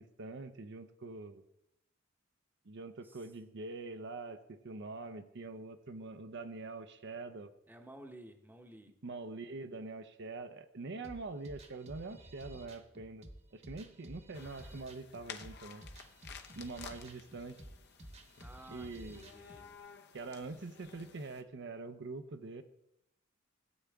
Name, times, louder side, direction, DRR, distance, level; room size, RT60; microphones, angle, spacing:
voice 1, 0.0-1.4 2.7-7.5 9.0-15.8 16.5-17.6 18.7-19.3 20.1-22.6, right 3 dB, 60° right, 8 dB, 0.6 m, -44 dB
voice 2, 7.7-8.9 18.4-19.8, right 1 dB, 10° right, 5 dB, 0.9 m, -54 dB
sound 1, 11.0-19.6, right 1 dB, 30° right, 1.1 m, -53 dB
sound 2, 14.3-21.4, left 7 dB, 55° left, 0.8 m, -53 dB
15.0 x 8.7 x 3.5 m, 0.83 s
head